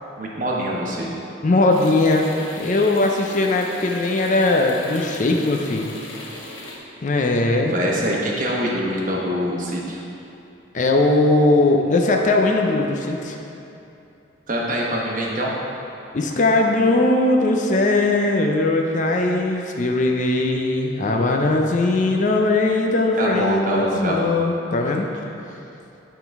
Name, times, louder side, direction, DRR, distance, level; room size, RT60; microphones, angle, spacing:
voice 1, 0.2-1.1 7.5-10.0 14.5-15.5 23.2-24.4, equal, 45° right, -3 dB, 1.0 m, -24 dB
voice 2, 1.4-5.9 7.0-7.8 10.7-13.4 16.1-25.1, left 2 dB, 40° left, 2 dB, 0.5 m, -19 dB
sound 1, 1.7-6.8, left 2 dB, 85° left, 1.0 m, -38 dB
9.3 x 3.8 x 4.7 m, 2.8 s
head